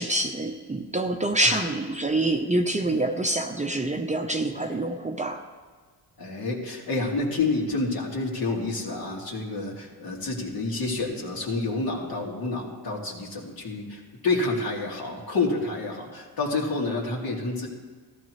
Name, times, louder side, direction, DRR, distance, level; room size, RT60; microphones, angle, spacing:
voice 1, 0.0-5.4, right 1 dB, 15° right, 3 dB, 0.8 m, -26 dB
voice 2, 6.2-17.7, left 3 dB, 60° left, -2 dB, 2.5 m, -29 dB
14.5 x 12.5 x 3.2 m, 1.5 s
cardioid pair, 85°, 41 cm